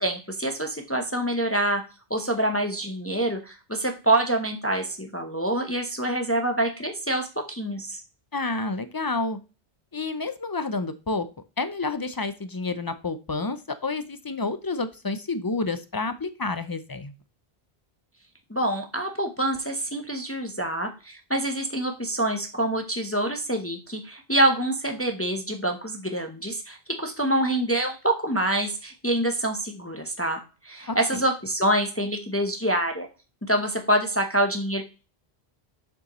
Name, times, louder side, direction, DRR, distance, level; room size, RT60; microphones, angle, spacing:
voice 1, 0.0-1.8 2.1-8.0 18.5-30.4 30.6-33.1 33.5-34.8, right 1 dB, 15° left, 4 dB, 0.7 m, -26 dB
voice 2, 8.3-9.4 9.9-11.3 11.6-17.1 30.9-31.2, left 3 dB, 35° left, 11 dB, 0.3 m, -29 dB
7.0 x 6.5 x 3.0 m, 0.32 s
omnidirectional pair, 1.1 m